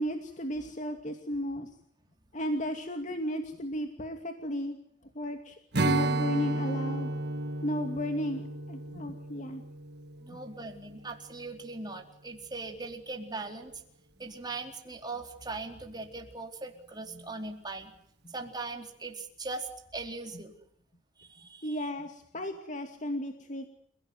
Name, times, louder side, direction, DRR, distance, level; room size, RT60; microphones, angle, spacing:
voice 1, 0.0-1.7 2.3-4.8 5.1-7.1 7.6-9.6 10.3-10.4 18.2-18.3 20.3-20.4 21.6-23.7, equal, 45° left, 5 dB, 2.5 m, -34 dB
Strum, 5.7-11.2, right 2 dB, 65° right, 1.5 m, -33 dB
voice 2, 10.2-13.8 14.2-17.9 18.3-20.5 21.2-21.8, right 3 dB, 25° right, 3 dB, 4.2 m, -40 dB
30.0 x 17.5 x 9.7 m, 0.67 s
head